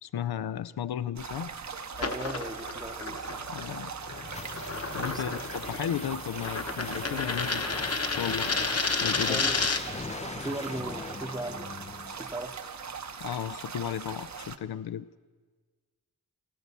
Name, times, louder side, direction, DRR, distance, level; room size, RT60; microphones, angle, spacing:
voice 1, 0.0-1.5 3.5-3.9 4.9-9.4 13.2-15.0, left 9 dB, 85° left, 15 dB, 0.5 m, -34 dB
sound 1, 1.2-14.6, right 6 dB, 50° right, 0.7 m, -40 dB
sound 2, 1.9-10.0, left 4 dB, 40° left, 0.9 m, -32 dB
voice 2, 2.0-3.5 5.0-5.5 9.3-9.6 10.4-11.7 12.2-12.6, right 1 dB, 10° right, 9 dB, 0.7 m, -38 dB
sound 3, 3.9-12.5, left 4 dB, 20° left, 0.3 m, -41 dB
14.5 x 12.5 x 6.8 m, 1.4 s
wide cardioid pair, 110°, 37 cm